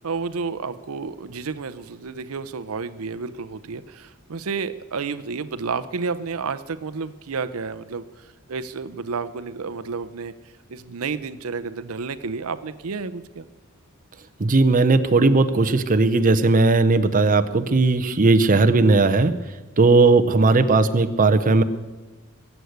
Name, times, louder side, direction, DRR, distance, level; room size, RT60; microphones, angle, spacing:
voice 1, 0.0-13.5, right 5 dB, 75° right, 12 dB, 0.6 m, -31 dB
voice 2, 14.4-19.3 19.8-21.6, right 3 dB, 40° right, 9 dB, 0.7 m, -17 dB
21.5 x 8.1 x 8.0 m, 1.2 s
head